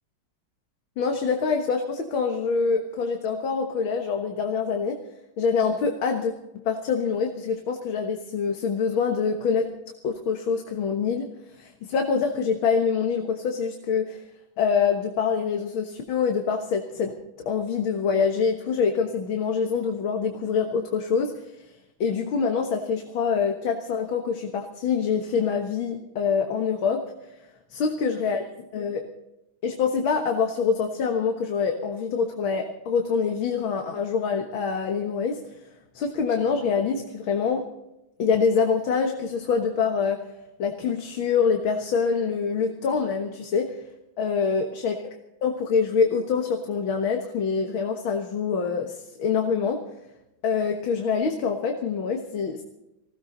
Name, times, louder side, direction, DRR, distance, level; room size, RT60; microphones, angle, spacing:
voice 1, 1.0-5.0 5.4-6.3 6.7-9.7 10.0-11.3 11.6-14.2 14.6-17.1 17.5-21.5 22.0-27.0 27.7-28.4 28.7-29.0 29.6-35.4 35.9-37.6 38.2-40.2 40.6-43.8 44.2-45.1 45.4-49.8 50.4-52.6, left 5 dB, 85° left, 3 dB, 2.2 m, -25 dB
20.5 x 16.0 x 3.9 m, 0.92 s
omnidirectional pair, 2.2 m